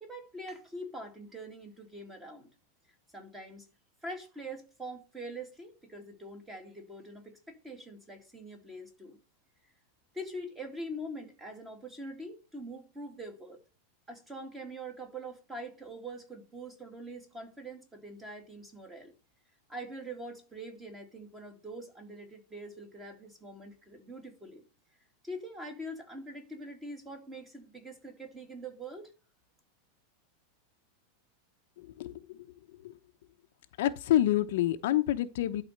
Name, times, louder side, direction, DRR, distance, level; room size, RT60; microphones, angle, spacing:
voice 1, 0.0-2.5 3.1-3.7 4.0-9.2 10.1-13.6 14.1-19.1 19.7-24.6 25.2-29.1, right 1 dB, 10° right, 2.4 m, -44 dB
voice 2, 31.8-32.4 32.8-32.9 33.8-35.6, left 13 dB, 65° left, 0.8 m, -28 dB
12.0 x 4.2 x 6.6 m
supercardioid pair, 170°, 0 cm